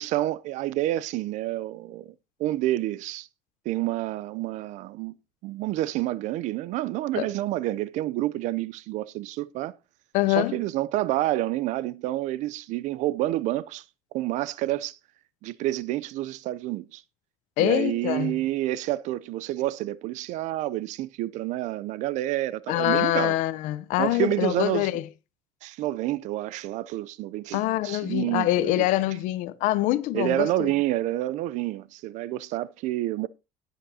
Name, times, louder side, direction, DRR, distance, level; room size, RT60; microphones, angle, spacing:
voice 1, 0.0-2.1 2.4-3.3 3.7-5.1 5.4-9.7 10.3-13.8 14.1-15.0 15.4-17.0 17.6-23.3 24.0-24.9 25.6-28.9 30.1-33.3, right 15 dB, 70° right, 0.5 m, -28 dB
voice 2, 10.1-10.5 17.6-18.4 22.7-25.0 27.5-30.7, left 16 dB, 75° left, 0.6 m, -25 dB
17.5 x 8.0 x 2.7 m
cardioid pair, 125°, 13 cm